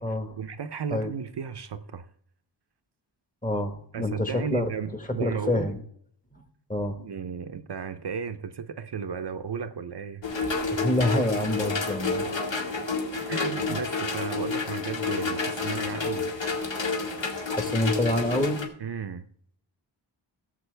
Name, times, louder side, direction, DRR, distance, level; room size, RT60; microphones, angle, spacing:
voice 1, 0.0-2.0 3.9-5.7 7.0-10.3 13.3-16.3 18.8-19.3, right 6 dB, 55° right, 0.7 m, -34 dB
voice 2, 3.4-4.7 5.2-5.8 6.7-7.0 10.7-12.2 17.5-18.6, left 1 dB, 15° left, 1.4 m, -26 dB
sound 1, 10.2-18.7, left 4 dB, 65° left, 2.0 m, -29 dB
16.5 x 7.5 x 3.3 m
wide cardioid pair, 110°, 48 cm